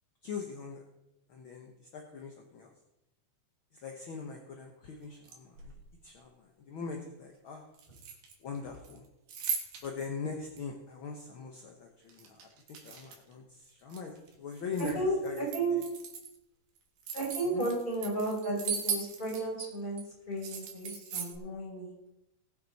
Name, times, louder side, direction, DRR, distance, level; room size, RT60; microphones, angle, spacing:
voice 1, 0.2-0.8 1.3-2.7 3.7-5.7 6.0-7.7 8.4-9.0 9.8-15.8 17.5-17.7, left 5 dB, 60° left, 2 dB, 1.4 m, -42 dB
sound 1, 5.1-5.9 7.7-8.6 8.8-10.1 10.6-10.7 12.1-13.3 13.7-14.9 15.2-16.3 16.8-19.7 20.0-20.1 20.4-21.4, right 6 dB, 90° right, 3.4 m, -38 dB
voice 2, 14.9-15.8 17.1-20.0 20.3-21.9, right 2 dB, 15° left, -5 dB, 6.0 m, -33 dB
19.5 x 7.5 x 4.2 m, 0.89 s
omnidirectional pair, 3.7 m